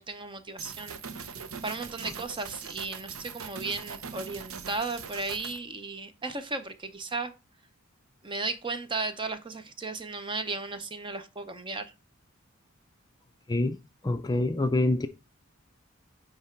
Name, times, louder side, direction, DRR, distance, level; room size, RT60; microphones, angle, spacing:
voice 1, 0.0-7.3 8.2-11.9, right 3 dB, 25° right, 0.6 m, -35 dB
sound 1, 0.6-5.6, right 6 dB, 70° right, 0.7 m, -41 dB
voice 2, 14.0-15.1, left 2 dB, 20° left, 0.5 m, -25 dB
9.5 x 3.4 x 4.4 m
head